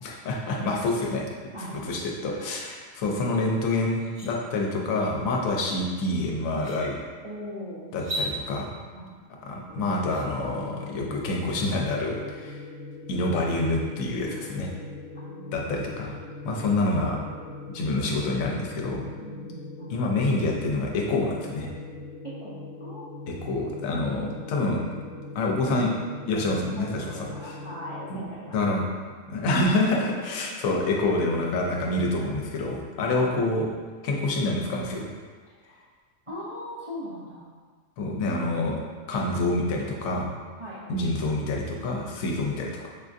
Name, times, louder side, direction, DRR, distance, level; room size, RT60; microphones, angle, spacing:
voice 1, 0.0-1.3 1.7-7.0 7.9-8.8 9.4-12.6 13.1-14.7 15.5-16.2 16.4-17.2 17.7-19.0 19.9-21.7 23.3-25.0 25.3-25.9 26.3-27.6 28.1-28.2 28.5-28.8 29.3-33.7 34.0-35.1 38.0-38.8 39.1-40.3 40.9-42.9, left 2 dB, 90° left, 0 dB, 1.0 m, -27 dB
voice 2, 1.5-1.9 7.2-7.8 8.9-9.1 14.5-14.7 15.1-15.7 19.2-20.0 22.4-22.5 22.8-23.1 26.8-28.5 30.4-30.5 33.0-33.2 35.6-35.8 36.3-37.5 40.6-40.8, equal, 50° right, -9 dB, 0.3 m, -39 dB
sound 1, 3.3-3.4 3.8-4.3 5.9-6.0 6.5-6.8 7.9-8.3, equal, 25° right, 0.9 m, -33 dB
sound 2, 9.7-28.1, left 2 dB, 70° right, 1.3 m, -41 dB
4.9 x 2.5 x 2.4 m, 1.5 s
omnidirectional pair, 1.4 m